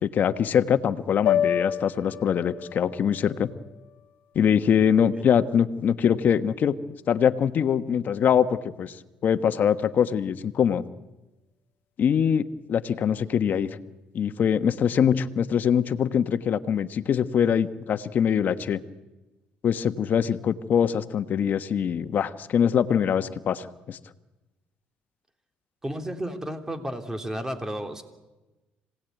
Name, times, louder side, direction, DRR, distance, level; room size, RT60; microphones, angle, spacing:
voice 1, 0.0-3.5 4.3-6.8 7.1-8.9 9.2-10.8 12.0-13.8 14.1-18.8 19.6-24.0, left 8 dB, 55° left, 9 dB, 1.3 m, -23 dB
sound 1, 1.3-5.5, left 10 dB, 80° left, 0.9 m, -30 dB
voice 2, 25.8-28.0, right 1 dB, 15° right, 5 dB, 3.0 m, -32 dB
26.0 x 18.0 x 9.3 m, 1.1 s
cardioid pair, 100°, 4 cm